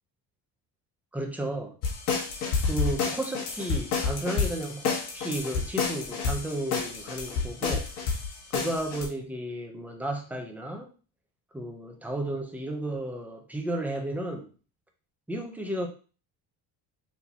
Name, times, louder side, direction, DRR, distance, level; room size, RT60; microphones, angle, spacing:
voice 1, 1.1-1.8 2.6-7.9 8.5-10.9 11.5-14.5 15.3-15.9, right 1 dB, 5° right, 0.5 m, -33 dB
sound 1, 1.8-9.1, left 5 dB, 75° left, 1.4 m, -29 dB
5.9 x 2.8 x 2.7 m
cardioid pair, 165°, 40 cm